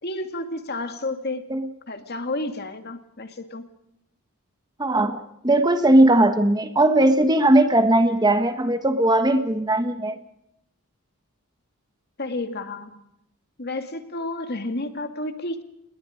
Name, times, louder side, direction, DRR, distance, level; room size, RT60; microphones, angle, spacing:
voice 1, 0.0-1.4 1.9-3.7 12.2-13.0 13.6-15.6, left 2 dB, 45° left, 7 dB, 2.2 m, -31 dB
voice 2, 4.8-10.2, right 1 dB, 20° right, 9 dB, 1.2 m, -19 dB
29.0 x 20.5 x 5.1 m, 0.79 s
head